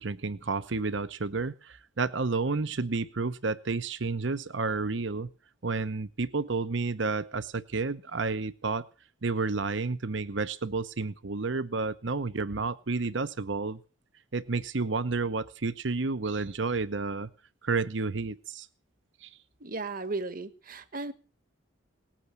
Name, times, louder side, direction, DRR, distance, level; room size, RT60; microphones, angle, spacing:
voice 1, 0.0-5.3 5.6-8.9 9.2-13.8 14.3-17.3 17.6-18.7 19.2-19.3, right 3 dB, 65° right, 14 dB, 0.9 m, -31 dB
voice 2, 19.6-21.1, right 3 dB, 45° right, 13 dB, 1.4 m, -35 dB
19.5 x 8.9 x 8.1 m, 0.36 s
head